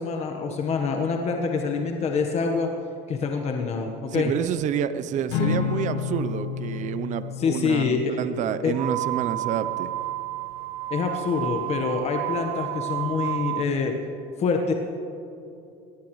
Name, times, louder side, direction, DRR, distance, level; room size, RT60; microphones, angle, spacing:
voice 1, 0.0-2.7 3.1-4.3 7.4-8.1 8.6-8.7 10.9-13.9 14.4-14.7, left 5 dB, 35° left, 3 dB, 1.3 m, -26 dB
voice 2, 4.1-9.9, right 9 dB, 45° right, 12 dB, 0.7 m, -29 dB
Acoustic guitar / Strum, 5.3-9.8, left 7 dB, 70° left, 1.2 m, -31 dB
sound 1, 8.7-13.7, right 17 dB, 80° right, 0.5 m, -31 dB
23.5 x 18.0 x 3.2 m, 2.7 s
supercardioid pair, 125°, 18 cm